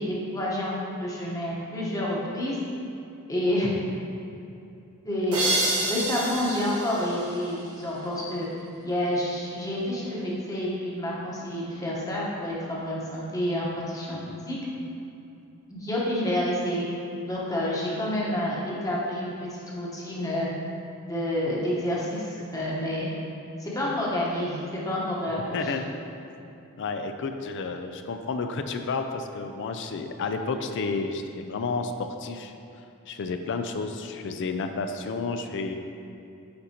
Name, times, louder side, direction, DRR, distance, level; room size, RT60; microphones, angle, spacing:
voice 1, 0.0-2.6 3.3-3.7 5.0-8.5 8.8-14.6 15.7-16.9 17.3-20.5 21.1-23.1 23.6-25.7, left 1 dB, 15° left, -5 dB, 1.1 m, -29 dB
sound 1, 5.3-8.0, right 2 dB, 85° right, 1.2 m, -29 dB
voice 2, 25.5-25.9 26.8-32.5 33.1-35.8, left 4 dB, 55° left, 6 dB, 0.4 m, -31 dB
9.4 x 4.1 x 2.9 m, 2.8 s
head